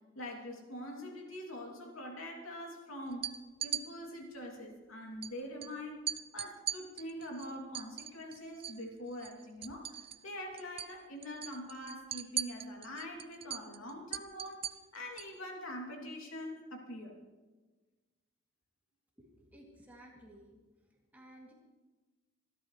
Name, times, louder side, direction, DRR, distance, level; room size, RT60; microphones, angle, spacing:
voice 1, 0.1-3.3 3.6-6.0 6.3-14.6 14.9-17.2, equal, 80° left, 0 dB, 3.0 m, -44 dB
sound 1, 3.1-3.8 5.2-5.3 5.6-5.7 6.1-8.8 9.1-10.3 10.6-10.9 11.2-15.4, right 10 dB, 25° right, 0.3 m, -39 dB
voice 2, 19.2-20.6 21.1-21.5, right 1 dB, 10° right, -3 dB, 2.8 m, -55 dB
25.0 x 12.5 x 3.3 m, 1.3 s
head